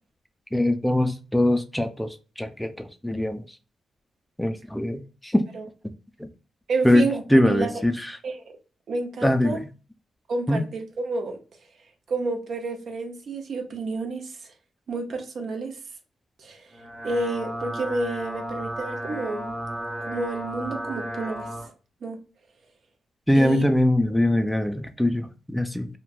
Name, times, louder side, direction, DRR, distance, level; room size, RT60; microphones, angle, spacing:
voice 1, 0.5-2.1 2.4-2.7 3.0-3.4 4.4-5.4 6.8-7.0 7.3-8.1 9.2-9.6 10.5-10.6 23.3-25.9, left 1 dB, 5° left, 0.4 m, -22 dB
voice 2, 6.7-7.8 8.2-8.5 8.9-9.6 10.3-11.4 12.1-14.3 14.9-15.7 16.4-16.6 17.0-19.5 20.1-21.5 22.0-22.2 23.3-23.7, right 3 dB, 65° right, 0.6 m, -30 dB
sound 1, 16.7-21.7, equal, 35° right, 1.1 m, -33 dB
3.1 x 2.1 x 2.4 m
cardioid pair, 70°, 0 cm